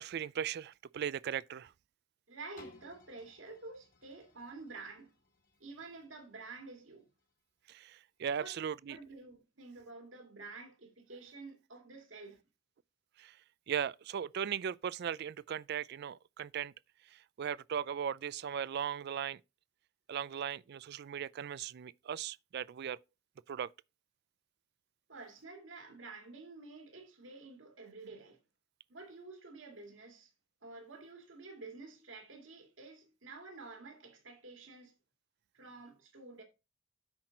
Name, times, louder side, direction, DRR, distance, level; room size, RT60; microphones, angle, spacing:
voice 1, 0.0-1.7 7.7-9.0 13.2-13.4 13.7-16.7 17.1-19.4 20.1-23.0 23.5-23.7, right 8 dB, 55° right, 0.3 m, -38 dB
voice 2, 2.3-5.1 5.6-7.1 8.4-8.6 8.9-12.4 25.1-28.4 28.9-30.3 30.6-34.9 35.5-36.4, right 3 dB, 70° right, 2.2 m, -50 dB
sound 1, 2.6-8.3 8.9-9.0, left 2 dB, 45° left, 2.0 m, -62 dB
8.7 x 5.9 x 3.8 m
head